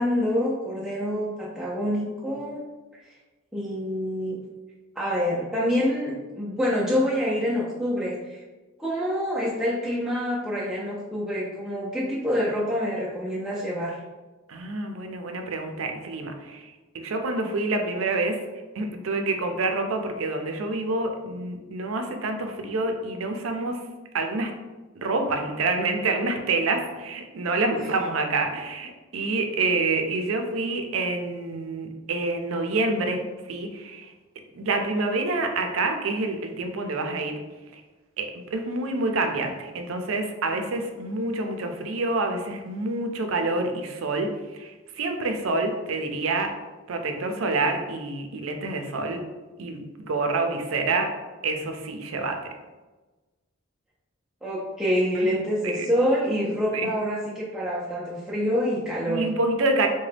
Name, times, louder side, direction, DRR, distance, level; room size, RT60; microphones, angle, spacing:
voice 1, 0.0-2.6 3.5-4.4 5.0-8.4 8.8-14.0 54.4-59.2, equal, 5° right, -7 dB, 0.4 m, -26 dB
voice 2, 14.5-18.4 18.7-23.8 24.1-24.5 24.9-33.2 33.5-34.1 34.5-37.4 37.7-37.8 38.2-46.5 46.9-49.2 49.6-51.1 51.4-52.4 55.1-55.3 55.6-55.9 56.7-56.9 59.1-59.9, right 3 dB, 80° right, 5 dB, 0.5 m, -27 dB
3.8 x 2.1 x 3.2 m, 1.2 s
head